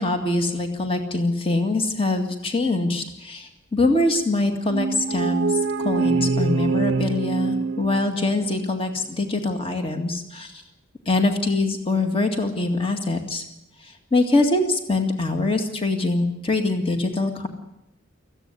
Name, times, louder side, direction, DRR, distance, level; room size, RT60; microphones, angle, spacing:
voice 1, 0.0-5.5 5.8-10.5 11.1-13.4 14.1-17.5, left 2 dB, 25° left, 5 dB, 2.0 m, -23 dB
sound 1, 4.7-8.4, right 4 dB, 65° right, 0.7 m, -24 dB
18.0 x 15.0 x 9.7 m, 0.83 s
head